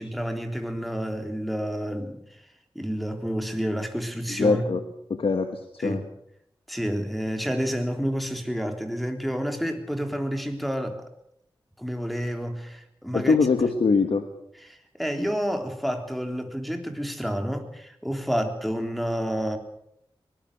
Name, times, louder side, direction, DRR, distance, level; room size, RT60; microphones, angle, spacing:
voice 1, 0.0-2.2 2.8-4.6 5.8-6.0 6.7-11.0 11.8-13.4 14.7-19.6, equal, ahead, 4 dB, 3.6 m, -29 dB
voice 2, 4.3-4.8 5.1-6.0 13.1-14.2, left 4 dB, 90° left, 6 dB, 1.6 m, -23 dB
23.5 x 19.5 x 6.8 m, 0.76 s
wide cardioid pair, 70°, 9 cm